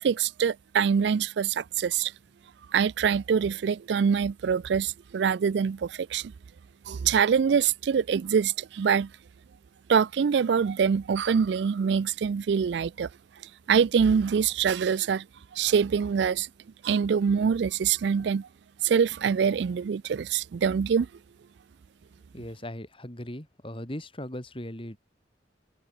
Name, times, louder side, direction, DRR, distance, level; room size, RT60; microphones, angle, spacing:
voice 1, 0.0-2.1 2.7-6.3 6.9-9.1 9.9-13.1 13.7-15.2 15.5-16.5 16.8-18.5 18.8-21.1, right 6 dB, 65° right, 0.4 m, -24 dB
voice 2, 22.3-25.0, left 1 dB, 30° left, 4.1 m, -38 dB
head